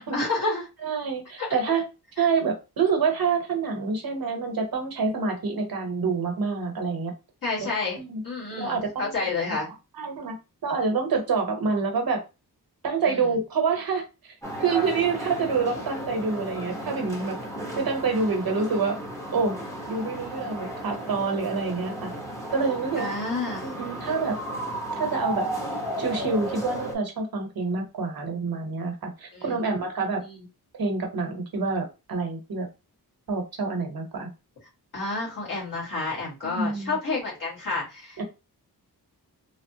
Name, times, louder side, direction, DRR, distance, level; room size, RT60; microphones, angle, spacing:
voice 1, 0.1-0.7 1.4-1.5 2.2-2.3 7.4-9.7 13.0-13.3 23.0-23.7 29.3-29.6 30.2-30.5 34.9-38.2, left 3 dB, 55° left, -4 dB, 1.7 m, -30 dB
voice 2, 0.8-1.8 2.2-7.1 8.0-8.2 8.5-9.1 9.5-9.7 10.0-10.4 10.6-12.2 12.8-17.4 17.8-19.0 19.3-19.6 19.9-22.1 22.5-23.1 23.6-24.4 25.0-25.5 26.0-30.2 30.8-32.7 33.3-34.3 36.4-37.0 38.2-38.3, right 4 dB, 65° right, 3 dB, 0.9 m, -27 dB
sound 1, 14.4-26.9, right 1 dB, 10° left, 0.8 m, -34 dB
3.2 x 2.0 x 2.7 m, 0.28 s
wide cardioid pair, 130°, 38 cm